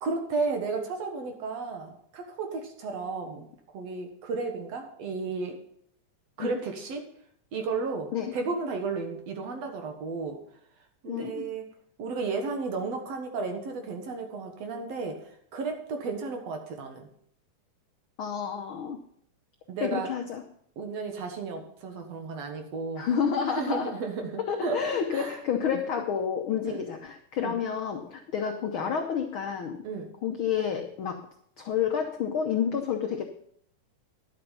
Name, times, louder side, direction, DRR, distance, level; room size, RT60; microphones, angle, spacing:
voice 1, 0.0-3.5 3.7-5.6 6.4-7.0 7.5-10.4 11.0-11.7 12.0-15.2 15.5-17.1 19.7-20.1 20.8-23.1 23.5-24.8 25.1-25.8 26.7-26.8 27.4-27.6 29.8-30.1, right 4 dB, 60° right, 4 dB, 2.3 m, -33 dB
voice 2, 11.0-11.4 18.2-19.0 19.8-20.4 23.0-24.0 24.4-29.8 30.2-31.3 31.6-33.2, left 7 dB, 80° left, 4 dB, 1.1 m, -29 dB
11.0 x 7.9 x 5.6 m, 0.66 s
omnidirectional pair, 3.6 m